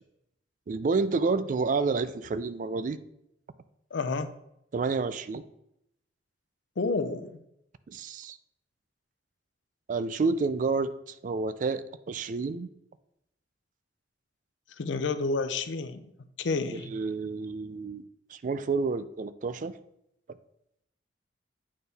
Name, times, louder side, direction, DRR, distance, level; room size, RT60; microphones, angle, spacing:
voice 1, 0.7-3.0 4.7-5.4 7.9-8.4 9.9-12.7 16.7-18.0 18.3-19.8, right 4 dB, 45° right, 14 dB, 0.3 m, -29 dB
voice 2, 3.9-4.3 6.8-7.4 14.8-16.1 16.4-16.9, left 3 dB, 90° left, 11 dB, 0.5 m, -30 dB
8.5 x 4.4 x 3.4 m, 0.80 s
head